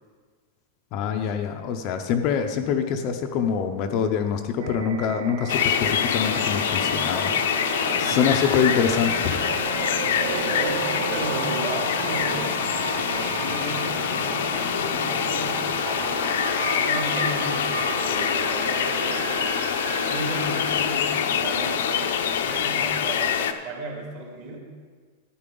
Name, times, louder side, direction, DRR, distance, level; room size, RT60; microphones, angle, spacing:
voice 1, 0.9-7.3 8.0-9.4, left 7 dB, 35° left, 6 dB, 0.6 m, -25 dB
sound 1, 4.6-22.4, right 9 dB, 60° right, 0.5 m, -34 dB
sound 2, 5.5-23.5, left 8 dB, 70° left, 0.7 m, -25 dB
sound 3, 7.9-15.8, right 4 dB, 15° right, 0.6 m, -41 dB
voice 2, 8.1-8.4 10.2-12.6 13.0-16.3 16.8-19.5 20.1-24.6, right 2 dB, 45° right, -1 dB, 2.5 m, -35 dB
12.0 x 9.4 x 3.8 m, 1.5 s
supercardioid pair, 170°, 0 cm